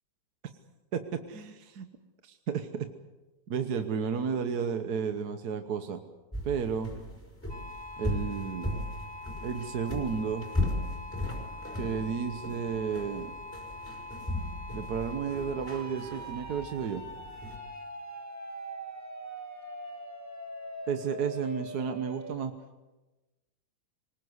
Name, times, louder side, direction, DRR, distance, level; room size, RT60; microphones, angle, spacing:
voice 1, 0.9-1.9 2.2-2.9 3.5-6.0 6.4-6.9 8.0-8.8 9.4-10.5 11.7-13.3 14.7-17.0 20.9-22.5, right 6 dB, 65° right, 8 dB, 1.6 m, -32 dB
sound 1, 6.3-17.6, left 1 dB, 5° left, 5.0 m, -37 dB
sound 2, 7.5-22.4, equal, 10° right, 1.5 m, -43 dB
24.5 x 20.5 x 8.0 m, 1.1 s
omnidirectional pair, 1.8 m